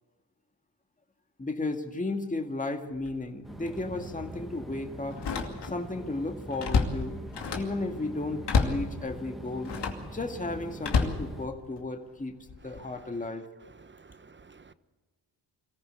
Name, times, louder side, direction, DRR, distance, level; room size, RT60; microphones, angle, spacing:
voice 1, 1.4-5.2 5.6-7.2 7.5-9.7 10.1-12.4 12.6-13.4, left 2 dB, 20° left, 2.0 m, -34 dB
Slam, 2.9-3.2 3.7-3.8 5.1-5.9 6.2-7.8 8.4-8.9 9.6-10.1 10.8-11.9 12.5-12.8, left 5 dB, 70° left, 2.6 m, -29 dB
sound 1, 3.4-11.5, right 1 dB, ahead, 2.0 m, -43 dB
voice 2, 13.8-14.7, right 4 dB, 25° right, 1.1 m, -53 dB
23.0 x 15.0 x 8.2 m
cardioid pair, 65°, 43 cm